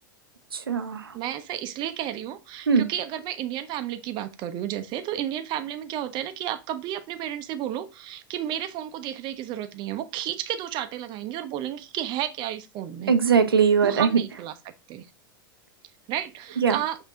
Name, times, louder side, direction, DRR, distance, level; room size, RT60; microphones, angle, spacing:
voice 1, 0.5-1.2 2.7-2.8 13.1-14.2 16.6-16.8, right 6 dB, 90° right, 0.5 m, -21 dB
voice 2, 1.1-13.1 13.8-14.5 14.9-15.1 16.1-17.0, right 11 dB, 40° right, 0.6 m, -32 dB
5.2 x 2.7 x 3.4 m
hypercardioid pair, 95°, 12 cm